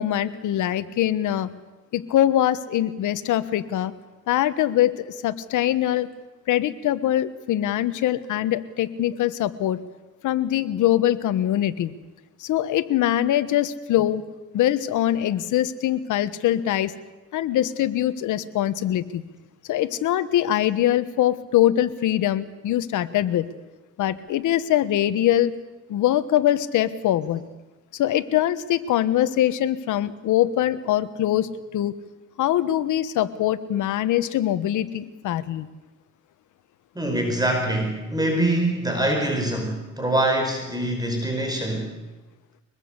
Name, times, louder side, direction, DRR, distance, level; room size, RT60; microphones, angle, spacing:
voice 1, 0.0-1.5 1.9-3.9 4.3-6.1 6.5-9.8 10.2-11.9 12.4-14.2 14.5-16.9 17.3-19.2 19.7-23.5 24.0-25.5 25.9-27.4 27.9-31.9 32.4-35.7, left 12 dB, 80° left, 13 dB, 1.3 m, -23 dB
voice 2, 36.9-41.9, right 1 dB, 15° right, 3 dB, 5.0 m, -24 dB
23.5 x 20.5 x 8.2 m, 1.1 s
cardioid pair, 90°, 30 cm